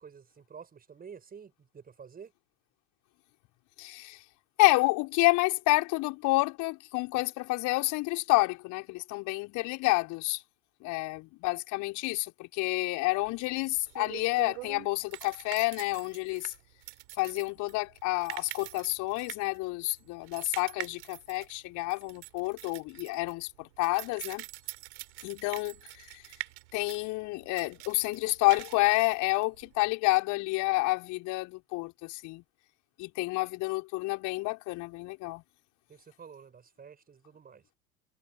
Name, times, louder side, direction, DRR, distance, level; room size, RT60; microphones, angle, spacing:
voice 1, 0.0-2.3 35.9-37.6, right 6 dB, 20° right, 7.2 m, -50 dB
voice 2, 3.8-4.2 4.6-10.4 10.8-16.5 17.2-24.4 25.2-26.2 26.7-32.4 33.0-35.4, left 22 dB, 45° left, 4.6 m, -29 dB
sound 1, 13.2-29.9, right 22 dB, 50° right, 4.0 m, -45 dB
figure-of-eight pair, 80°, 43 cm